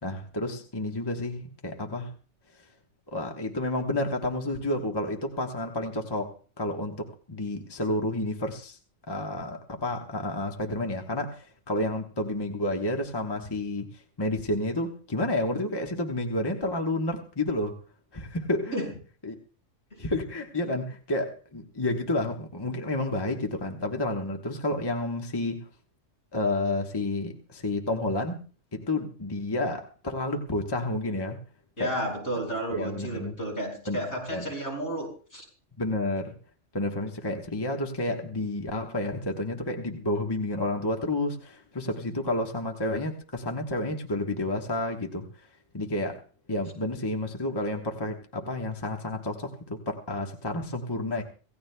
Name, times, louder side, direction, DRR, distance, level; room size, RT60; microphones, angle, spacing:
voice 1, 0.0-2.1 3.1-8.8 9.1-17.8 18.1-18.8 19.2-19.3 20.0-25.6 26.3-28.4 28.7-31.4 31.8-31.9 32.7-33.4 33.9-34.0 34.3-34.5 35.8-36.3 36.7-45.3 45.7-46.2 46.5-51.2, left 1 dB, 20° left, 1.2 m, -30 dB
voice 2, 31.8-35.5, equal, 65° left, 5.9 m, -32 dB
26.0 x 16.5 x 2.3 m
omnidirectional pair, 1.3 m